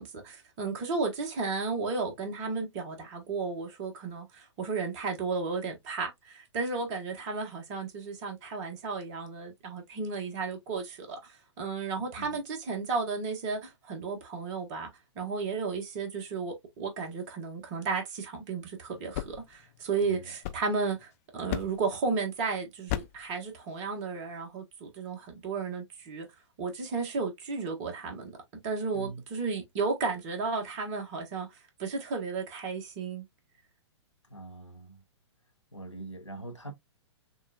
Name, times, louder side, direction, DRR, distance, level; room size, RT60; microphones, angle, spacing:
voice 1, 0.0-14.9 15.1-26.3 26.6-28.3 28.6-33.2, right 4 dB, 30° right, 1.4 m, -33 dB
sound 1, 18.9-21.1 21.5-22.0 22.9-23.3, left 15 dB, 30° left, 0.4 m, -37 dB
voice 2, 20.0-20.3 28.9-29.2 34.3-35.0 35.7-36.7, right 2 dB, 90° left, 1.0 m, -43 dB
6.3 x 2.6 x 2.3 m
figure-of-eight pair, 115°, 15 cm